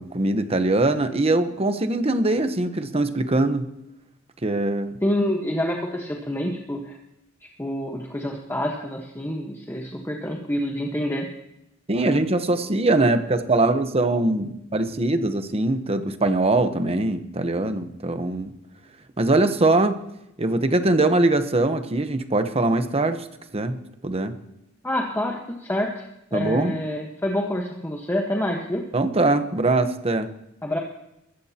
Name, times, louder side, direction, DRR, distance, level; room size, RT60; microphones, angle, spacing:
voice 1, 0.0-3.7 4.4-5.0 11.9-18.5 19.2-20.0 20.4-23.3 23.5-24.3 26.3-26.8 28.9-30.3, right 2 dB, 30° right, 9 dB, 1.0 m, -22 dB
voice 2, 5.0-7.0 7.6-11.3 24.8-26.0 26.3-28.8 30.6-30.8, left 1 dB, 10° left, 0 dB, 1.3 m, -27 dB
22.0 x 14.5 x 2.9 m, 0.85 s
head